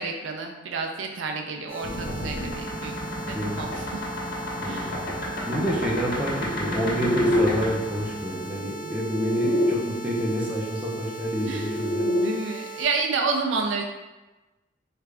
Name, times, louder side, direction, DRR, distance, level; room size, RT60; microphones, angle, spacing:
voice 1, 0.0-3.0 3.3-4.0 4.6-5.0 9.4-9.9 11.5-11.7 12.0-13.8, right 4 dB, 80° right, 3 dB, 0.4 m, -30 dB
sound 1, 1.7-12.8, right 3 dB, 75° left, 1.4 m, -39 dB
sound 2, 1.8-9.7 11.0-12.3, left 1 dB, 50° left, 0.7 m, -29 dB
voice 2, 3.2-3.6 4.6-5.0 5.4-12.1, equal, 5° right, -5 dB, 0.6 m, -28 dB
3.3 x 2.4 x 3.3 m, 1.1 s
head